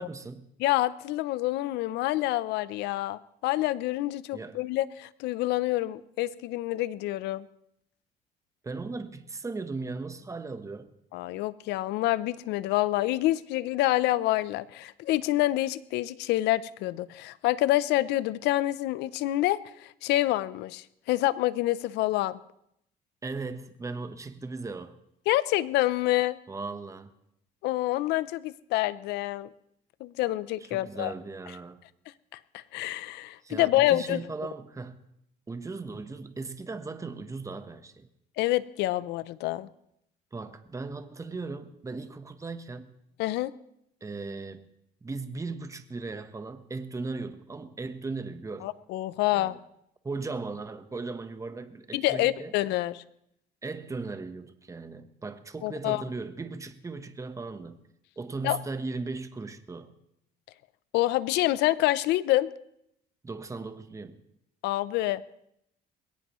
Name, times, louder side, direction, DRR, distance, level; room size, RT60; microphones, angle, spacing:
voice 1, 0.0-0.5 4.3-4.6 8.6-10.9 23.2-25.0 26.5-27.1 30.6-31.8 33.4-35.0 35.5-38.1 40.3-42.9 44.0-44.6 45.0-48.7 49.3-49.6 50.0-52.5 53.6-57.8 58.2-59.9 63.2-64.2, right 3 dB, 20° right, 1.0 m, -37 dB
voice 2, 0.6-7.5 11.1-22.4 25.3-26.4 27.6-29.5 30.0-31.1 32.3-34.2 38.4-39.7 43.2-43.5 48.6-49.6 51.9-53.0 55.6-56.0 58.4-58.6 60.9-62.5 64.6-65.2, left 16 dB, 90° left, 0.6 m, -27 dB
21.0 x 17.0 x 3.1 m
cardioid pair, 110°, 17 cm